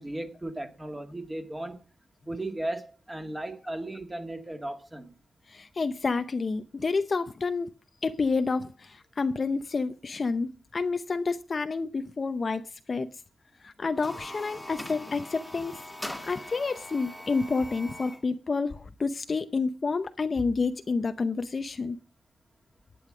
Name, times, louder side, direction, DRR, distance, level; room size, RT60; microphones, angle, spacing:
voice 1, 0.0-1.8 2.3-5.1, right 1 dB, 15° right, 2.2 m, -36 dB
voice 2, 5.5-7.7 8.0-13.1 13.6-15.8 16.3-22.0, left 4 dB, 35° left, 0.7 m, -29 dB
sound 1, 13.9-18.3, left 1 dB, 5° left, 2.0 m, -41 dB
11.5 x 9.4 x 5.0 m
wide cardioid pair, 145°, 0 cm